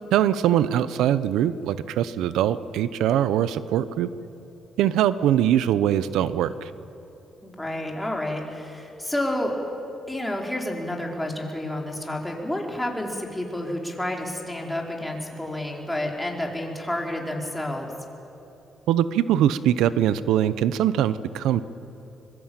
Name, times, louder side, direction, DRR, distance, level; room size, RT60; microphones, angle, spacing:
voice 1, 0.1-4.1 4.8-6.7 18.9-21.6, right 11 dB, 90° right, 14 dB, 0.8 m, -22 dB
voice 2, 7.4-9.5 10.1-17.9, left 1 dB, 5° left, -1 dB, 4.7 m, -30 dB
24.0 x 23.0 x 9.0 m, 2.9 s
cardioid pair, 90°, 0 cm